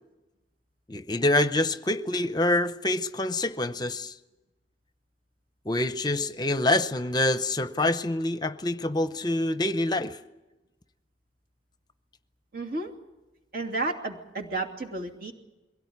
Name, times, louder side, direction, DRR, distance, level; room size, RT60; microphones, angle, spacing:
voice 1, 0.9-4.1 5.7-10.2, left 2 dB, 25° left, 11 dB, 0.7 m, -26 dB
voice 2, 12.5-12.9 13.5-15.3, right 2 dB, 60° right, 1 dB, 2.7 m, -32 dB
22.5 x 17.0 x 9.5 m, 1.0 s
head